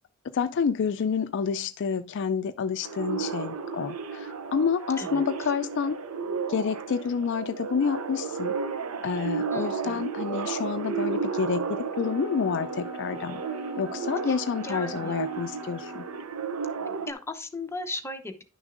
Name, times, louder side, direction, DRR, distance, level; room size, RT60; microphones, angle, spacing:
voice 1, 0.3-6.0 6.5-8.6 9.0-13.4 13.8-16.0, left 6 dB, 55° left, 0.4 m, -29 dB
sound 1, 2.8-17.1, right 5 dB, 80° right, 0.7 m, -33 dB
voice 2, 9.5-10.0 14.3-14.4 14.6-15.3 17.1-18.4, left 2 dB, 10° left, 0.9 m, -37 dB
Wind instrument woodwind instrument, 11.9-16.3, left 2 dB, 30° right, 1.1 m, -43 dB
11.0 x 6.2 x 2.5 m
head